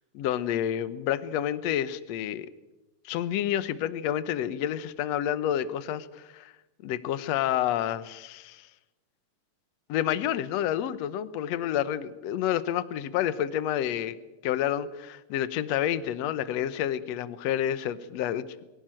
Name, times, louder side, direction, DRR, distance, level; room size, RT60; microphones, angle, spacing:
voice 1, 0.2-2.5 3.1-6.5 6.8-8.7 9.9-14.2 14.4-18.6, left 11 dB, 65° left, 15 dB, 1.8 m, -29 dB
23.5 x 17.5 x 9.0 m, 1.0 s
omnidirectional pair, 4.1 m